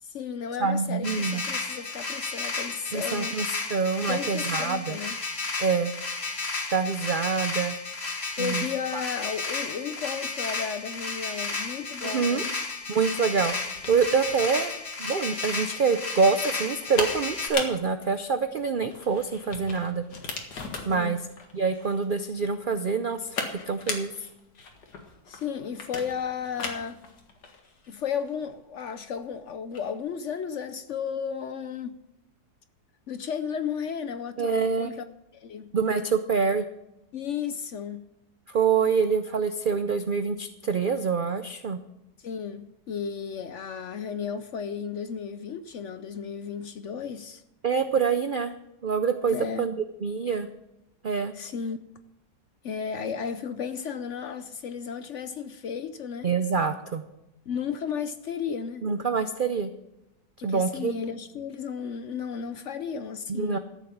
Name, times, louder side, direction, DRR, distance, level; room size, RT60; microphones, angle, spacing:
voice 1, 0.0-3.4 4.1-5.2 8.4-12.5 20.9-21.2 25.3-27.0 27.9-32.0 33.1-35.0 35.3-35.7 37.1-38.0 42.2-47.4 49.3-49.7 51.3-51.8 52.6-56.3 57.5-58.9 60.4-63.6, left 7 dB, 60° left, 0.8 m, -34 dB
voice 2, 0.6-1.4 2.9-5.0 5.6-5.9 6.7-7.8 8.4-8.7 8.9-9.0 12.0-12.4 12.9-14.7 15.0-20.0 20.8-21.2 21.5-24.1 34.4-34.9 35.7-36.6 38.5-41.8 47.6-48.5 48.8-50.5 51.0-51.3 56.2-57.0 58.8-59.7 60.4-60.9 63.3-63.6, right 5 dB, 75° right, 0.4 m, -26 dB
sound 1, 1.0-17.5, left 3 dB, 40° left, 1.8 m, -33 dB
sound 2, 12.6-30.0, left 4 dB, 90° left, 2.3 m, -39 dB
13.5 x 7.3 x 7.2 m
omnidirectional pair, 1.7 m